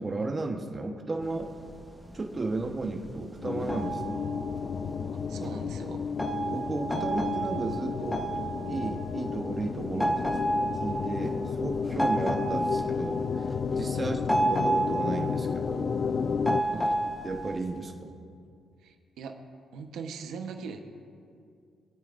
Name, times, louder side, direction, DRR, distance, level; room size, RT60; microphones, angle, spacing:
voice 1, 0.0-1.5 2.1-4.2 6.3-8.2 8.7-10.1 10.8-14.2 14.5-15.9 16.7-16.9 17.2-18.1, right 3 dB, 30° right, 3 dB, 1.2 m, -34 dB
sound 1, 1.2-17.6, right 1 dB, 10° left, 1.1 m, -32 dB
sound 2, 3.4-16.6, left 6 dB, 50° left, 0.3 m, -32 dB
voice 2, 5.3-6.0 13.9-14.2 16.7-17.0 18.8-19.3 19.7-20.8, right 5 dB, 80° right, 4 dB, 1.1 m, -41 dB
24.0 x 8.8 x 2.6 m, 2.4 s
cardioid pair, 90°, 0 cm